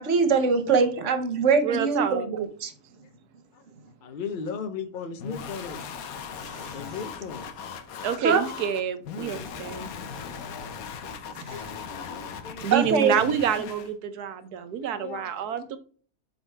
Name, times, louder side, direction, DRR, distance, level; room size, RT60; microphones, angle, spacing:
voice 1, 0.0-2.7 8.2-8.4 11.5-11.7 12.7-13.1, right 5 dB, 55° right, 1.2 m, -23 dB
voice 2, 1.6-2.3 8.0-9.9 12.6-15.8, right 8 dB, 90° right, 1.4 m, -28 dB
voice 3, 4.0-5.8 6.7-7.4 9.3-10.7 11.5-11.6 11.9-12.7 15.0-15.5, left 5 dB, 45° left, 0.8 m, -37 dB
sound 1, 5.2-13.9, left 6 dB, 70° left, 1.2 m, -38 dB
7.4 x 4.1 x 3.3 m
omnidirectional pair, 1.6 m